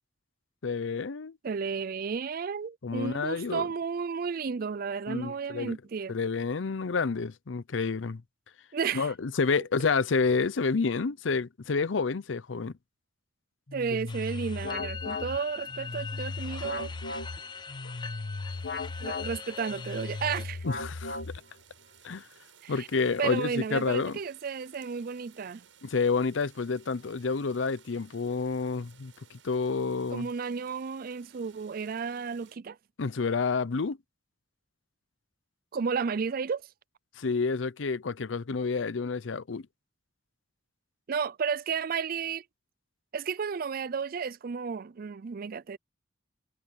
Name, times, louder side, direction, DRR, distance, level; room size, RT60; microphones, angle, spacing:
voice 1, 0.6-1.4 2.8-3.7 5.1-5.8 6.1-8.2 8.9-12.7 17.8-17.9 20.7-21.3 22.0-22.3 22.7-24.2 25.8-30.3 33.0-34.0 37.2-39.7, left 4 dB, 75° left, 0.6 m, -29 dB
voice 2, 1.4-6.2 8.7-9.1 13.7-16.9 19.0-20.7 22.6-22.9 23.2-25.6 30.1-32.8 35.7-36.6 41.1-42.4 43.1-45.8, right 6 dB, 50° right, 0.4 m, -33 dB
sound 1, 13.7-21.7, left 3 dB, 60° left, 1.2 m, -37 dB
sound 2, 14.1-20.5, left 6 dB, 25° left, 0.7 m, -42 dB
sound 3, 18.5-32.6, right 8 dB, 85° right, 7.8 m, -59 dB
head